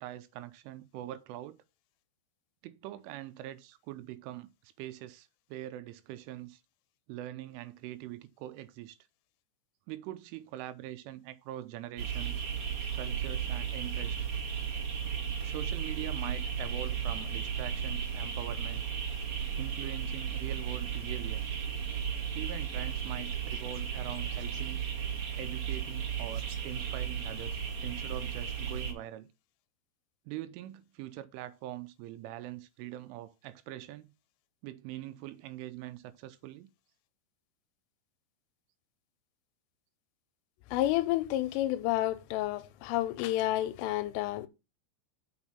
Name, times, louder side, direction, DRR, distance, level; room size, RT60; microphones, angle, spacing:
voice 1, 0.0-1.6 2.6-6.6 7.1-9.0 9.9-12.4 12.9-14.2 15.4-18.9 19.6-21.4 22.3-24.8 25.4-29.3 30.3-34.1 34.6-36.7, right 14 dB, 85° right, 3.1 m, -43 dB
sound 1, 12.0-28.9, right 7 dB, 45° right, 2.8 m, -35 dB
voice 2, 40.7-44.5, left 15 dB, 90° left, 3.2 m, -30 dB
6.2 x 6.0 x 5.7 m
omnidirectional pair, 5.7 m